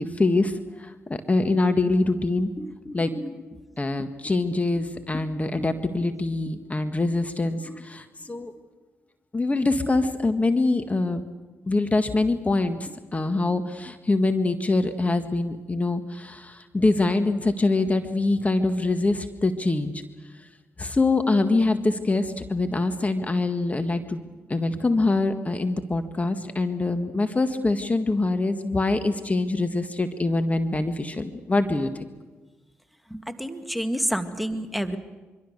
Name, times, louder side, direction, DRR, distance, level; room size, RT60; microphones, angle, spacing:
voice 1, 0.0-3.4 3.8-8.5 9.3-11.2 11.7-20.0 20.8-24.2 24.5-31.9, left 2 dB, 25° left, 8 dB, 1.7 m, -24 dB
voice 2, 33.1-35.0, equal, ahead, 8 dB, 2.1 m, -28 dB
24.5 x 24.5 x 6.7 m, 1.2 s
hypercardioid pair, 40°, 6 cm